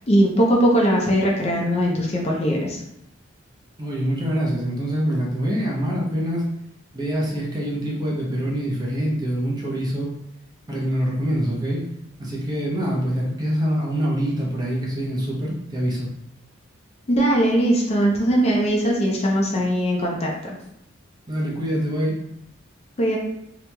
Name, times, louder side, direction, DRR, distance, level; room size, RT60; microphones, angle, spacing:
voice 1, 0.1-2.8 17.1-20.6 23.0-23.2, equal, 35° left, -2 dB, 0.5 m, -20 dB
voice 2, 3.8-6.4 6.9-10.1 10.7-11.8 12.2-16.1 21.3-22.2, equal, 20° right, -4 dB, 0.7 m, -25 dB
2.9 x 2.8 x 2.2 m, 0.78 s
head